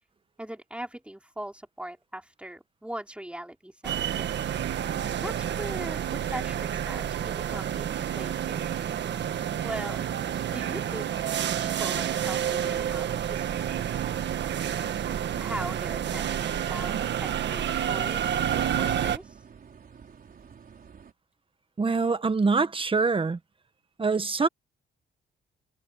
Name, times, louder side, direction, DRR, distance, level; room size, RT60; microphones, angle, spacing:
voice 1, 0.4-4.3 4.6-8.7 9.6-10.1 10.5-11.1 11.6-14.0 15.3-18.3 18.8-19.4, right 1 dB, 5° right, 3.7 m, -40 dB
sound 1, 3.8-19.2, right 9 dB, 60° right, 1.7 m, -29 dB
sound 2, 9.3-21.1, right 6 dB, 45° right, 4.7 m, -51 dB
voice 2, 21.8-23.4 24.0-24.5, right 4 dB, 25° right, 1.4 m, -24 dB
cardioid pair, 90°, 20 cm